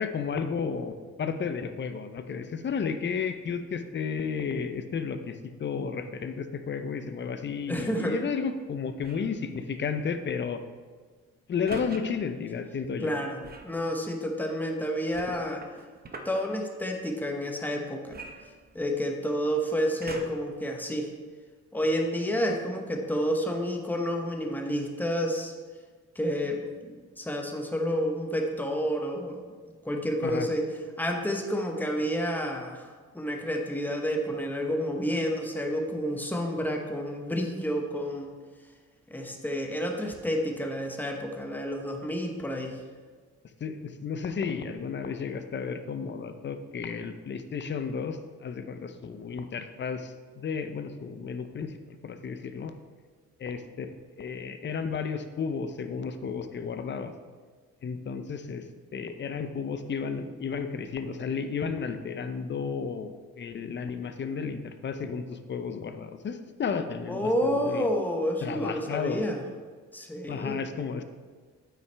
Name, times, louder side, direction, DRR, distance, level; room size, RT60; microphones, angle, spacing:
voice 1, 0.0-10.6 11.5-13.1 30.2-30.5 43.6-52.7 53.4-53.9 54.2-57.1 57.8-58.7 58.9-67.9 68.4-69.2 70.3-71.0, left 6 dB, 40° left, 9 dB, 0.7 m, -33 dB
voice 2, 7.7-8.2 13.0-15.6 16.2-18.2 18.7-21.1 21.7-25.5 26.1-29.4 29.8-30.7 31.0-38.3 39.1-42.8 67.1-69.4 69.9-70.6, equal, 5° left, 2 dB, 1.0 m, -30 dB
sound 1, 9.0-9.4 11.7-12.0 13.4-13.8 15.1-16.4 18.1-19.1 20.0-20.5 21.2-21.3, right 3 dB, 30° right, 0.9 m, -42 dB
8.7 x 5.8 x 3.4 m, 1.5 s
cardioid pair, 90°, 30 cm